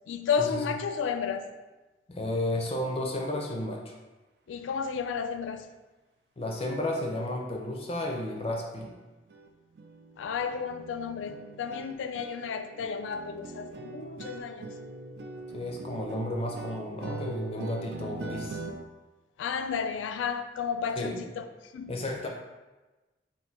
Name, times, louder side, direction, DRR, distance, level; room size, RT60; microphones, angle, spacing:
voice 1, 0.1-1.5 4.5-5.7 10.2-14.7 19.4-21.9, left 6 dB, 90° left, 0.3 m, -32 dB
voice 2, 2.1-4.0 6.4-8.9 15.5-18.6 21.0-21.2 21.9-22.3, left 1 dB, 30° left, 0.5 m, -32 dB
sound 1, 8.9-9.0 9.3-9.5 9.7-18.8, right 4 dB, 60° right, 0.3 m, -41 dB
3.6 x 2.6 x 4.3 m
head